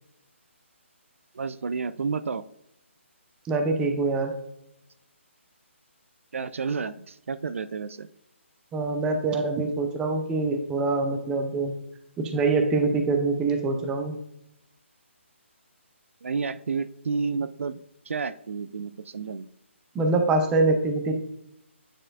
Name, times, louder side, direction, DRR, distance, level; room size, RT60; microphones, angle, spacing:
voice 1, 1.3-2.4 6.3-8.1 16.2-17.8 18.1-19.5, right 5 dB, 75° right, 14 dB, 0.4 m, -30 dB
voice 2, 3.5-4.3 8.7-11.7 12.2-14.2 19.9-21.1, right 3 dB, 10° right, 5 dB, 0.5 m, -24 dB
9.0 x 4.3 x 2.4 m, 0.80 s
hypercardioid pair, 160°, 7 cm